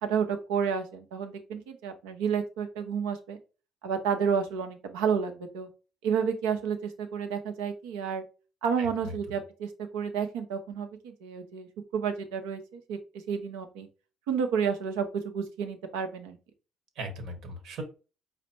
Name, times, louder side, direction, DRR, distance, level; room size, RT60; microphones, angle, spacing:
voice 1, 0.0-3.4 3.8-5.7 6.0-8.2 8.6-13.0 13.3-13.9 14.3-16.4, right 7 dB, 85° right, 6 dB, 0.8 m, -30 dB
voice 2, 8.8-9.4 16.9-17.8, right 1 dB, 65° right, 6 dB, 1.3 m, -39 dB
5.1 x 2.1 x 4.3 m, 0.33 s
supercardioid pair, 65°, 0 cm